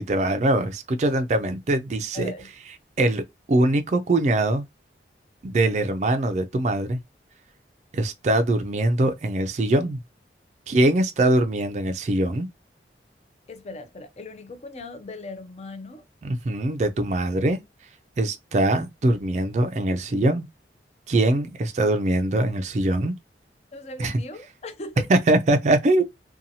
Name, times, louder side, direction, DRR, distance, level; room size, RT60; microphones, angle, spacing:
voice 1, 0.0-2.3 3.0-4.6 5.4-7.0 7.9-10.0 10.7-12.5 16.2-17.6 18.2-20.5 21.1-23.1 24.0-24.2 25.1-26.0, right 1 dB, 40° right, 0.4 m, -22 dB
voice 2, 2.1-2.5 13.5-16.0 23.7-25.1, left 2 dB, 35° left, 0.5 m, -38 dB
2.7 x 2.3 x 2.7 m
head